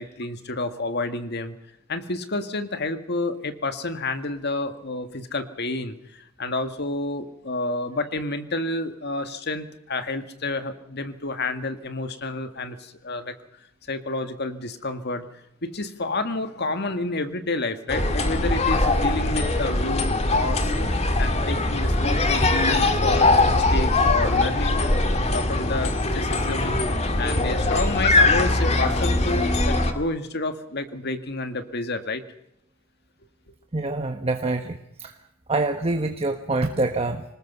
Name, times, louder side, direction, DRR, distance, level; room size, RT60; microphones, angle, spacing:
voice 1, 0.0-1.5 1.9-13.3 13.9-15.3 15.6-20.7 21.2-24.8 25.3-26.8 27.2-32.2, left 2 dB, 50° left, 8 dB, 1.9 m, -29 dB
sound 1, 17.9-29.9, left 2 dB, 30° left, 2.0 m, -21 dB
voice 2, 33.7-35.1 35.5-37.2, right 2 dB, 30° right, 5 dB, 1.3 m, -26 dB
25.5 x 20.0 x 5.5 m, 0.81 s
head